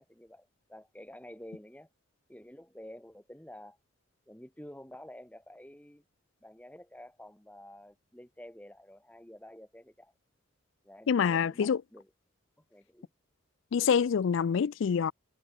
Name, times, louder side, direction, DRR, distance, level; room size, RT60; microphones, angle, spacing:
voice 1, 0.0-1.9 2.3-3.8 4.3-6.0 6.4-10.1 10.8-12.1 12.7-13.1, left 1 dB, 5° left, 1.6 m, -50 dB
voice 2, 11.1-11.8 13.7-15.1, left 7 dB, 65° left, 0.4 m, -26 dB
head